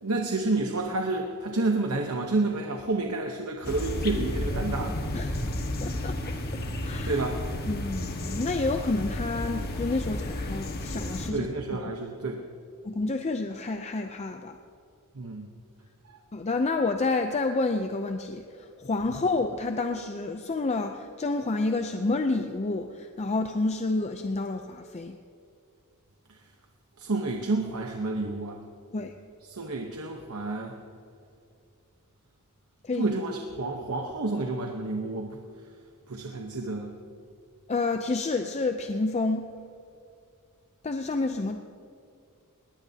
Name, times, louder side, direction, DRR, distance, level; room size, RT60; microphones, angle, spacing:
voice 1, 0.0-5.0 7.0-7.4 11.3-12.4 15.1-15.5 16.1-16.2 26.3-26.4 27.0-28.6 29.5-30.7 33.0-35.4 36.1-36.9, right 2 dB, 75° right, 2 dB, 1.0 m, -29 dB
sound 1, 3.6-11.3, left 1 dB, 45° left, 1.5 m, -32 dB
voice 2, 5.8-6.2 6.8-7.2 7.7-11.5 12.8-14.6 16.3-25.2 28.9-29.1 32.8-33.1 37.7-39.6 40.8-41.6, left 3 dB, 30° left, 6 dB, 0.5 m, -29 dB
20.5 x 18.5 x 2.8 m, 2.5 s
head